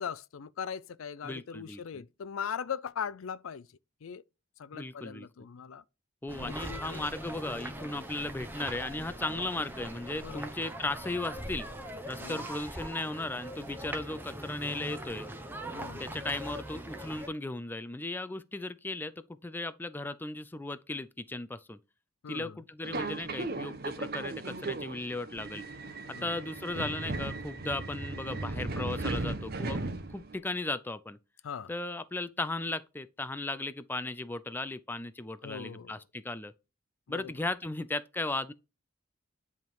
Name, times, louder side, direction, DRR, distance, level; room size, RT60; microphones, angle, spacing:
voice 1, 0.0-3.7 4.0-4.2 4.6-5.8 6.4-7.0 10.2-10.5 12.2-12.5 15.7-16.1 22.2-22.6 26.1-26.3 31.4-31.7 35.4-35.9 37.1-37.3, left 7 dB, 90° left, 0.5 m, -40 dB
voice 2, 1.2-2.0 4.7-5.3 6.2-11.7 12.1-15.3 16.0-21.8 22.3-25.6 26.2-29.8 30.1-31.2 31.7-36.5 37.1-38.5, left 2 dB, 10° left, 0.3 m, -36 dB
sound 1, 6.3-17.3, right 1 dB, 10° right, 0.9 m, -41 dB
Subway metro underground, 22.8-30.4, right 2 dB, 50° right, 1.0 m, -36 dB
10.5 x 3.6 x 4.6 m
head